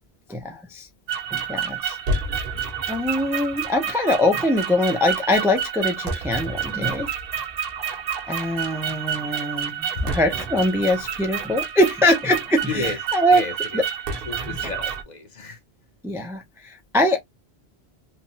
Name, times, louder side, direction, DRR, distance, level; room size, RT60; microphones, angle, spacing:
voice 1, 0.3-0.9 1.3-2.0 2.9-7.1 8.3-13.4 13.7-13.8 14.5-14.7 16.0-17.2, left 1 dB, 5° right, 0.4 m, -23 dB
sound 1, 1.1-15.0, right 6 dB, 60° right, 0.9 m, -29 dB
voice 2, 12.7-13.0 13.3-13.8 14.3-15.6, left 3 dB, 45° left, 0.9 m, -31 dB
3.2 x 2.1 x 2.7 m
omnidirectional pair, 1.1 m